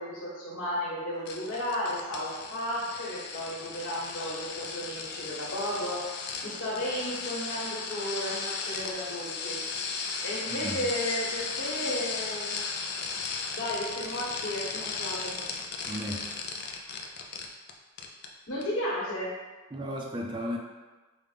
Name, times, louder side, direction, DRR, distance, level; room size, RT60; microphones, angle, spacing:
voice 1, 0.0-6.0 6.4-9.6 10.2-12.6 13.5-15.4 18.5-19.3, left 1 dB, 85° left, -6 dB, 1.3 m, -33 dB
sound 1, 1.3-17.7 18.0-18.3 18.6-18.7, left 4 dB, 50° left, 0.4 m, -36 dB
voice 2, 10.5-10.9 15.8-16.6 19.7-20.6, equal, 20° right, 0 dB, 0.3 m, -35 dB
5.1 x 2.1 x 3.3 m, 1.2 s
head